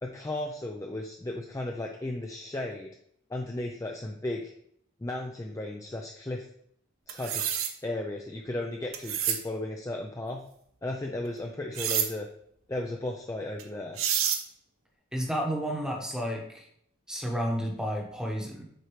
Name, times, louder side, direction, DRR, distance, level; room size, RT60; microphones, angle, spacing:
voice 1, 0.0-2.9 3.3-4.5 5.0-6.5 7.1-7.5 7.8-10.4 10.8-12.3 12.7-14.0, left 1 dB, 15° left, 1 dB, 0.4 m, -35 dB
Knive running over steel, 7.1-7.7 8.9-9.4 11.7-12.1 13.6-13.7 14.0-14.4, right 9 dB, 80° right, 0.7 m, -28 dB
voice 2, 15.1-16.7 17.1-18.6, equal, 5° right, 0 dB, 1.0 m, -31 dB
8.0 x 4.4 x 3.1 m, 0.67 s
head